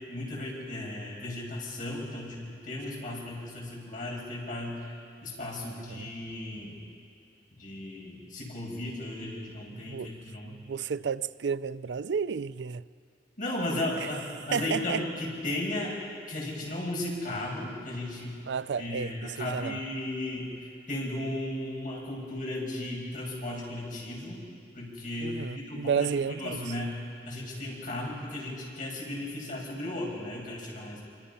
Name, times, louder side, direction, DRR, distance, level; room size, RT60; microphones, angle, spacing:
voice 1, 0.1-4.8 5.2-6.8 7.6-10.6 13.4-16.0 16.3-18.4 18.8-20.5 20.9-24.4 24.7-26.1 26.4-26.9 27.2-31.0, left 1 dB, 50° left, 6.7 m, -35 dB
voice 2, 9.7-10.1 10.4-12.8 14.0-14.1 14.5-15.0 18.5-19.8 25.2-26.7, right 6 dB, 85° right, 0.5 m, -32 dB
27.0 x 25.0 x 5.7 m
head